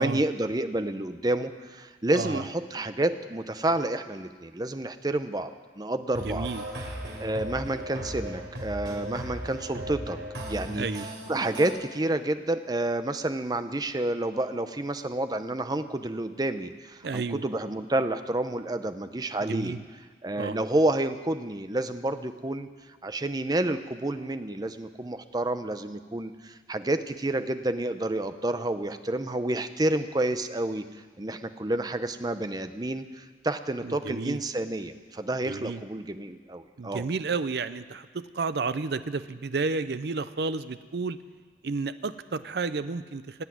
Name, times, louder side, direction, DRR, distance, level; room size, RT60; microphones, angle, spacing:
voice 1, 0.0-5.5 5.8-6.5 7.2-10.2 10.5-10.9 11.3-19.7 20.2-22.7 23.0-30.8 31.2-37.1, right 1 dB, 20° right, 10 dB, 0.6 m, -29 dB
voice 2, 2.1-2.4 6.3-6.6 10.8-11.1 17.0-17.4 19.4-19.8 20.4-20.6 33.8-34.4 35.4-35.8 36.8-41.2 41.6-43.4, right 4 dB, 65° right, 13 dB, 0.5 m, -31 dB
sound 1, 6.1-11.7, equal, 80° right, 3.6 m, -37 dB
17.5 x 8.2 x 9.3 m, 1.5 s
head